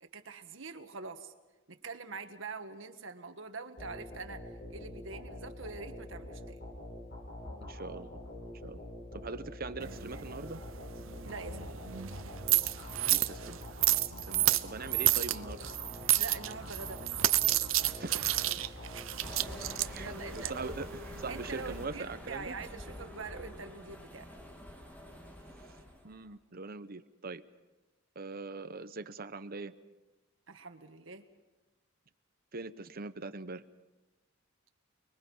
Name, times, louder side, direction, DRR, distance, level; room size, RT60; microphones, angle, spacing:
voice 1, 0.0-1.3 1.7-6.6 11.2-11.8 16.1-17.1 18.6-18.8 19.6-20.5 21.3-24.3 30.5-31.3, right 4 dB, 70° right, 8 dB, 1.6 m, -44 dB
sound 1, 3.8-20.4, left 1 dB, 55° left, 7.0 m, -45 dB
voice 2, 7.6-8.1 8.6-8.8 9.1-10.6 13.1-13.6 14.3-15.6 18.0-18.6 19.9-22.6 26.0-27.4 28.1-29.7 32.5-33.6, right 3 dB, 50° right, 11 dB, 1.0 m, -42 dB
sound 2, 9.8-21.8, right 15 dB, 85° right, 0.8 m, -31 dB
sound 3, 19.2-26.2, left 1 dB, 10° left, 2.8 m, -46 dB
29.5 x 22.0 x 5.6 m, 1.1 s
head